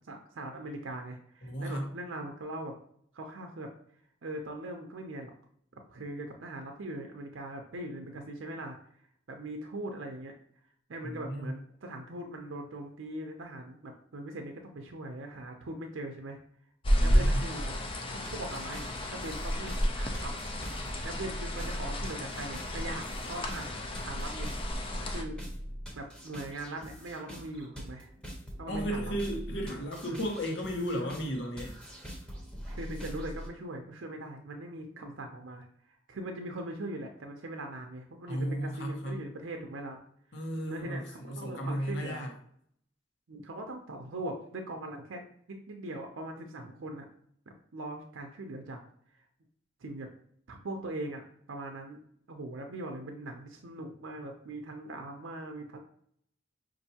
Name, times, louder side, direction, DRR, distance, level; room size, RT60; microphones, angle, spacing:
voice 1, 0.0-2.7 3.1-3.7 4.2-5.3 5.9-8.7 9.3-10.3 10.9-16.4 17.0-17.7 18.3-20.3 21.0-23.7 24.0-24.5 25.0-25.4 26.0-28.1 28.6-29.1 32.7-35.7 36.1-40.0 40.6-42.2 43.3-45.2 45.5-47.1 47.7-48.8 49.8-50.1 50.5-51.2 51.5-52.0 52.3-55.8, right 1 dB, 75° right, 3 dB, 0.6 m, -40 dB
voice 2, 1.4-1.9 11.0-11.5 16.9-17.4 28.7-31.8 38.3-39.3 40.3-42.3, equal, 65° left, 1 dB, 1.0 m, -34 dB
sound 1, 16.8-25.2, equal, 25° left, 0.5 m, -31 dB
sound 2, 18.2-33.5, equal, 5° left, 0.9 m, -44 dB
5.4 x 2.6 x 2.8 m, 0.67 s
head